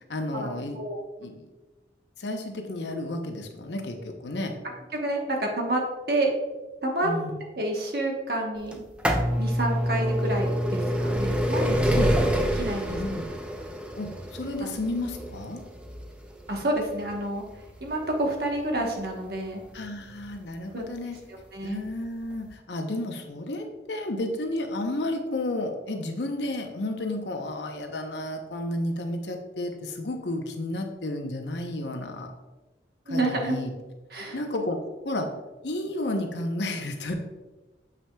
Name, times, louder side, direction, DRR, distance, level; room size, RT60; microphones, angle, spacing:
voice 1, 0.1-0.8 1.2-1.5 2.2-4.6 7.0-7.4 11.9-12.1 12.9-13.2 13.9-15.6 19.7-21.2 21.6-32.3 33.1-33.7 34.3-35.3 35.6-37.2, left 1 dB, 80° left, 4 dB, 0.8 m, -32 dB
voice 2, 4.9-5.8 6.1-6.3 6.8-7.1 7.6-8.8 9.4-12.1 12.5-13.2 14.6-14.7 16.5-17.4 17.8-19.6 20.7-20.9 21.5-21.8 33.1-33.6 34.1-34.4, right 1 dB, 60° right, 0 dB, 1.1 m, -29 dB
sound 1, 8.7-20.4 21.2-21.3 22.2-22.3 22.5-22.6, equal, 5° right, 0.4 m, -27 dB
7.1 x 5.9 x 2.3 m, 1.2 s
head